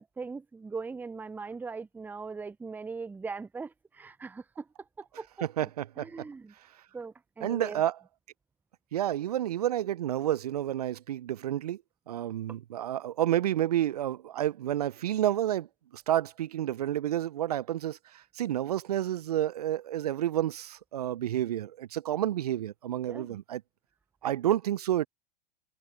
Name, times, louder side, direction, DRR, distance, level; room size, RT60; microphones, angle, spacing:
voice 1, 0.0-5.3 5.6-5.7 6.0-6.5 6.9-7.8 12.5-12.6 23.1-23.4, right 4 dB, 10° right, 0.5 m, -40 dB
voice 2, 5.6-6.1 7.4-7.9 8.9-11.8 12.1-15.7 15.9-23.6 24.2-25.1, right 12 dB, 75° right, 0.5 m, -30 dB
figure-of-eight pair, 90°, 20 cm